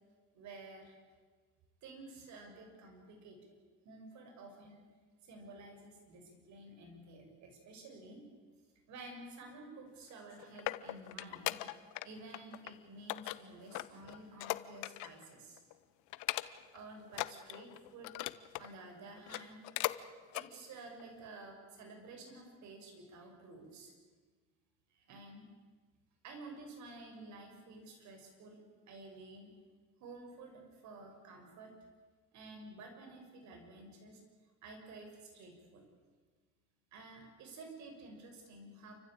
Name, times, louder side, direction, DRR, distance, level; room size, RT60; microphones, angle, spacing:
voice 1, 0.3-0.9 1.8-3.4 3.8-4.9 5.2-8.2 8.9-11.6 12.0-15.6 16.7-18.2 18.6-19.6 20.3-23.9 24.9-25.5 26.2-29.5 30.0-31.7 32.3-34.2 34.6-35.8 36.9-38.9, right 2 dB, 70° right, 3 dB, 6.6 m, -52 dB
sound 1, 10.1-12.1 12.3-12.7 13.1-15.2 15.6-15.7 16.1-16.8 17.1-18.7 19.2-20.0 20.3-20.5 21.0-21.1, left 19 dB, 85° left, 0.9 m, -39 dB
29.0 x 15.0 x 8.9 m, 1.4 s
cardioid pair, 90°, 30 cm